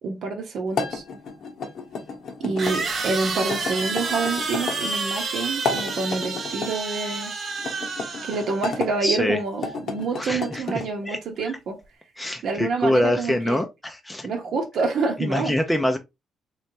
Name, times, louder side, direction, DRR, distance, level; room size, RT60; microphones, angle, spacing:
voice 1, 0.0-1.0 2.4-7.3 8.2-11.8 12.4-13.6 14.2-15.5, right 4 dB, 70° right, 0.9 m, -27 dB
sound 1, 0.7-2.8 3.5-4.8 5.5-6.7 7.6-8.9 9.5-10.9, left 4 dB, 65° left, 0.9 m, -32 dB
sound 2, 1.0-1.1 2.6-8.7, right 4 dB, 50° right, 1.0 m, -29 dB
voice 2, 9.0-9.4 10.2-10.4 11.0-11.2 12.2-14.3 15.2-16.0, left 1 dB, 5° left, 0.5 m, -24 dB
3.2 x 3.1 x 2.7 m
cardioid pair, 90°, 0 cm